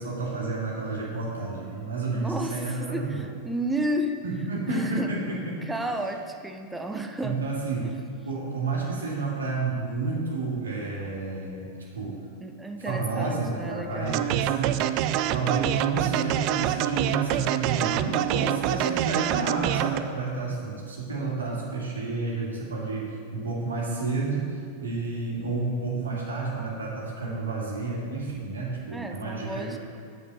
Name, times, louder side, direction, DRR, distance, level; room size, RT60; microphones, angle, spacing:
voice 1, 0.0-3.2 4.2-5.6 7.2-7.9 8.3-12.2 12.8-14.8 15.3-29.8, right 3 dB, 70° right, -4 dB, 2.1 m, -30 dB
voice 2, 2.1-4.1 4.7-5.1 5.6-7.4 12.4-14.2 28.9-29.8, right 1 dB, 5° right, 4 dB, 0.7 m, -32 dB
sound 1, 14.1-20.0, right 12 dB, 40° right, 0.3 m, -26 dB
7.2 x 6.2 x 6.5 m, 2.3 s
figure-of-eight pair, 90°, 0 cm